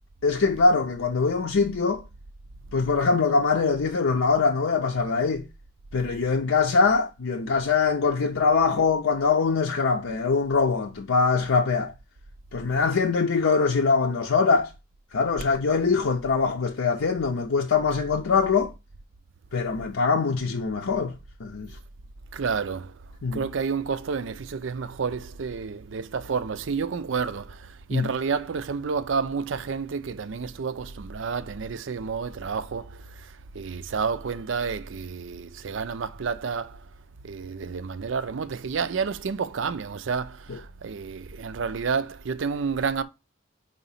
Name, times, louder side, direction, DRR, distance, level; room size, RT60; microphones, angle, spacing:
voice 1, 0.2-2.0 2.7-5.4 5.9-11.9 12.5-14.7 15.1-18.7 19.5-21.1 21.4-21.7 23.2-23.4 27.9-28.1 40.5-40.6, left 4 dB, 90° left, 0.6 m, -23 dB
voice 2, 22.3-23.0 23.3-36.9 37.2-43.0, right 5 dB, 70° right, 0.5 m, -30 dB
4.9 x 4.0 x 5.5 m
head